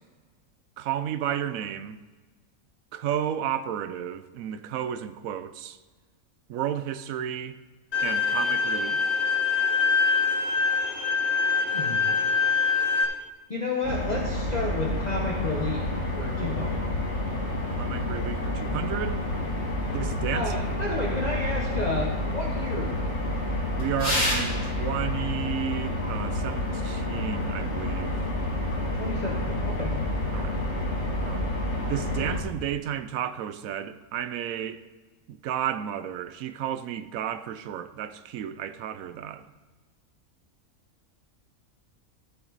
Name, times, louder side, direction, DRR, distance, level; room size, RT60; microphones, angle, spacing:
voice 1, 0.8-2.0 2.9-5.8 6.5-7.6 8.0-9.0 17.7-19.2 19.9-20.6 23.8-28.2 30.3-30.6 31.2-31.5 31.9-34.8 35.3-39.5, right 10 dB, 75° right, 1.0 m, -32 dB
Bowed string instrument, 7.9-13.0, left 5 dB, 80° left, 2.2 m, -24 dB
voice 2, 11.7-12.0 13.5-15.9 16.2-16.8 19.9-20.0 20.3-23.2 29.0-29.9, left 2 dB, 30° left, 1.1 m, -31 dB
sound 1, 13.8-32.4, left 1 dB, 50° left, 2.1 m, -29 dB
15.0 x 5.9 x 4.0 m
omnidirectional pair, 1.5 m